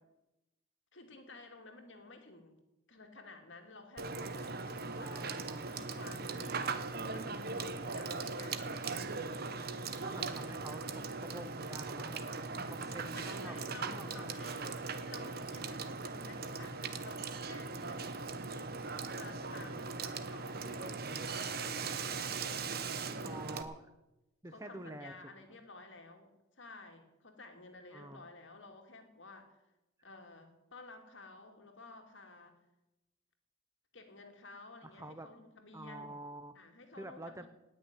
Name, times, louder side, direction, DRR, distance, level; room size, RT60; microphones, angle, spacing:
voice 1, 0.9-2.6 2.9-5.3 5.7-9.2 10.1-10.4 13.1-14.7 15.0-18.8 19.1-23.5 24.4-29.6 30.0-32.6 33.9-36.1 36.5-37.5, left 3 dB, 60° left, 4 dB, 2.6 m, -53 dB
Water / Water tap faucet / Sink (filling or washing), 4.0-23.6, right 4 dB, 45° right, 1.1 m, -39 dB
voice 2, 4.9-5.8 10.0-13.6 13.8-14.3 23.2-23.8 24.4-25.2 27.9-28.2 34.9-35.3 35.7-36.5 37.0-37.5, right 1 dB, 15° right, 10 dB, 0.7 m, -48 dB
18.5 x 6.7 x 9.8 m, 0.96 s
head